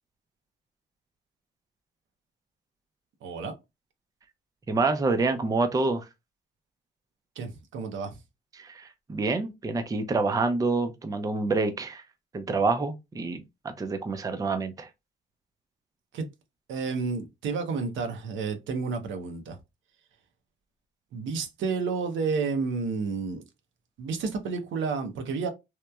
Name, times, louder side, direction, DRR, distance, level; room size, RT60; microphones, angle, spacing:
voice 1, 3.2-3.5 7.4-8.2 16.1-16.3 16.7-19.6 21.1-23.4 24.0-25.5, right 4 dB, 75° right, 0.6 m, -30 dB
voice 2, 4.7-6.0 8.6-12.0 12.3-13.4 13.8-14.9, right 3 dB, 20° right, 0.4 m, -27 dB
2.9 x 2.1 x 2.2 m
cardioid pair, 90°, 20 cm